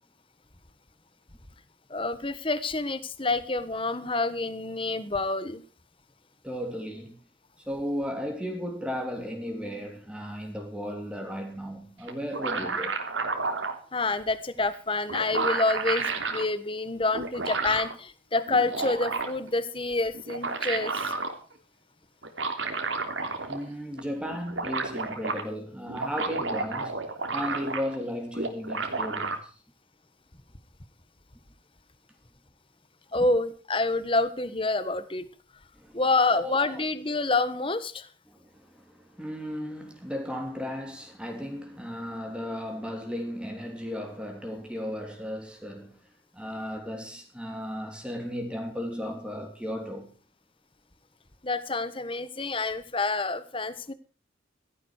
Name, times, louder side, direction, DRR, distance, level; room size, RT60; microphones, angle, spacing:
voice 1, 1.9-5.6 13.9-21.1 33.1-35.2 35.9-38.1 51.4-53.9, left 3 dB, 30° left, 1.4 m, -28 dB
voice 2, 6.4-7.2 7.6-13.0 23.5-27.0 27.3-29.5 33.1-33.3 35.7-36.0 36.4-36.8 38.3-46.0 46.3-50.1, equal, 5° right, 3.3 m, -35 dB
sound 1, 12.1-13.8 14.7-14.8 15.1-16.4 17.1-17.9 18.5-19.5 20.1-21.3 22.2-23.7 24.0-24.1 24.3-25.4 25.9-28.0 28.3-29.4, right 4 dB, 85° right, 3.2 m, -31 dB
16.5 x 14.0 x 4.7 m
head